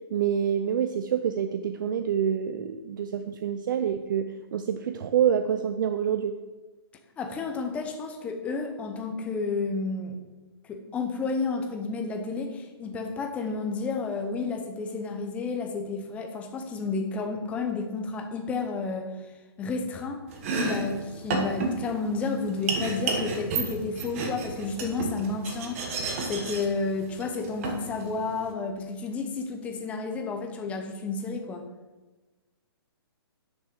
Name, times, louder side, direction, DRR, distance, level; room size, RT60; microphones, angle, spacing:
voice 1, 0.1-6.3, right 8 dB, 50° right, 9 dB, 0.5 m, -27 dB
voice 2, 7.2-10.2 10.6-19.3 19.6-20.2 20.5-25.8 26.3-31.7, left 4 dB, 10° left, 4 dB, 0.7 m, -31 dB
Domestic sounds home sounds, 20.3-28.5, right 3 dB, 35° right, 1.3 m, -32 dB
9.5 x 6.3 x 5.2 m, 1.2 s
hypercardioid pair, 165°, 13 cm